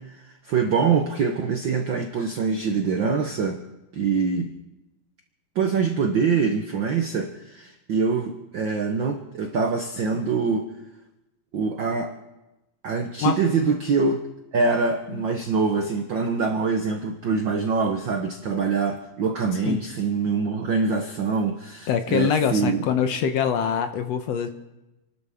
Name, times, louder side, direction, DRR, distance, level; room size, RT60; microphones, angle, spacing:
voice 1, 0.0-3.6 3.9-4.5 5.5-10.7 11.5-12.1 12.8-14.2 14.5-22.8, right 5 dB, 70° right, 4 dB, 1.1 m, -24 dB
voice 2, 21.9-24.5, left 7 dB, 70° left, 8 dB, 1.8 m, -24 dB
28.0 x 12.5 x 3.6 m, 0.99 s
omnidirectional pair, 3.4 m